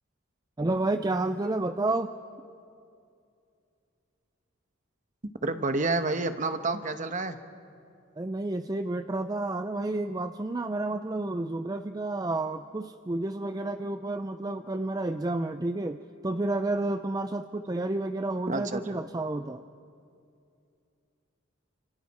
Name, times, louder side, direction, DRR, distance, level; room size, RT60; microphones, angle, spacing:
voice 1, 0.6-2.1 8.2-19.6, right 2 dB, 20° right, 9 dB, 0.5 m, -30 dB
voice 2, 5.4-7.4 18.5-19.0, right 3 dB, 40° right, 9 dB, 1.0 m, -29 dB
30.0 x 26.0 x 4.2 m, 2.5 s
head